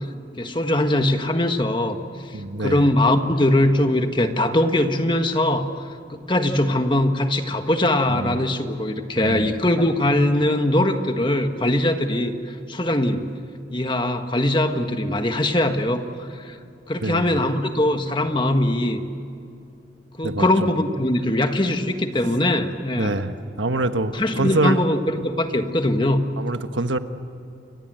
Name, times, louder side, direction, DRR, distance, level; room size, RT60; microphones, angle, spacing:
voice 1, 0.4-2.0 2.6-13.2 13.7-16.6 16.9-19.0 20.2-23.1 24.1-26.2, left 1 dB, 25° left, 6 dB, 1.5 m, -21 dB
voice 2, 2.3-2.9 8.1-8.5 9.2-9.5 17.0-17.4 20.2-20.5 23.0-24.8 26.4-27.0, right 2 dB, 90° right, 8 dB, 1.4 m, -25 dB
29.5 x 24.0 x 7.9 m, 2.7 s
head